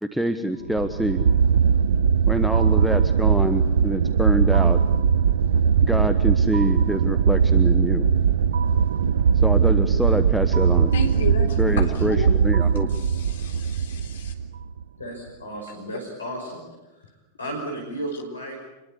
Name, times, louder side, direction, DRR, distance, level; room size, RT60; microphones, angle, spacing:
voice 1, 0.0-1.2 2.3-4.8 5.8-8.1 9.4-10.9 11.6-12.9, equal, 5° right, 10 dB, 1.2 m, -25 dB
sound 1, 0.7-14.8, right 7 dB, 65° right, 0.8 m, -20 dB
voice 2, 10.9-12.4 12.9-14.3, left 4 dB, 60° left, 4 dB, 3.9 m, -33 dB
voice 3, 15.0-16.6 16.9-18.7, right 1 dB, 75° left, 1 dB, 5.5 m, -34 dB
26.5 x 21.5 x 8.3 m, 1.1 s
figure-of-eight pair, 90°, 0 cm